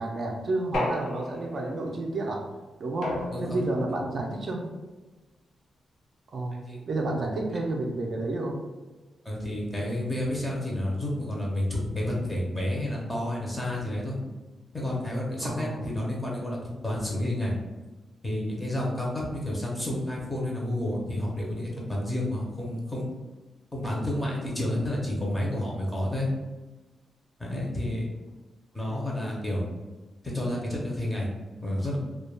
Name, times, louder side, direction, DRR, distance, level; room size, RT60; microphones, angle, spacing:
voice 1, 0.0-2.4 2.8-4.7 6.3-6.6 6.9-8.6 15.4-15.8 28.9-29.0, right 2 dB, 45° right, 0 dB, 0.3 m, -30 dB
sound 1, 0.7-1.7 3.0-3.8, left 1 dB, 80° left, 0.5 m, -33 dB
voice 2, 9.2-14.2 14.7-16.6 16.8-17.5 18.2-23.1 23.7-26.3 27.4-28.1 28.7-29.6 30.3-31.3 31.6-32.0, left 1 dB, 15° left, -3 dB, 0.6 m, -30 dB
2.2 x 2.2 x 3.1 m, 1.2 s
wide cardioid pair, 155°, 0 cm